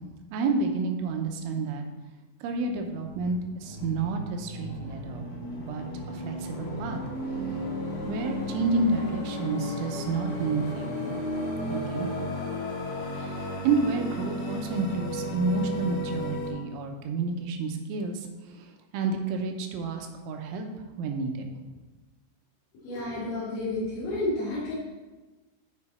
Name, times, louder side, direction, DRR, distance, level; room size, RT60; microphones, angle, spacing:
voice 1, 0.3-1.8 2.4-5.3 5.6-7.0 8.0-11.2 11.7-12.1 13.1-18.3 18.5-20.7 21.0-21.5, right 3 dB, 80° right, 3 dB, 3.2 m, -30 dB
sound 1, 2.4-16.5, left 1 dB, 45° left, 1.9 m, -34 dB
voice 2, 22.8-24.7, left 2 dB, 90° left, -11 dB, 5.3 m, -30 dB
12.0 x 5.1 x 4.3 m, 1.2 s
omnidirectional pair, 5.6 m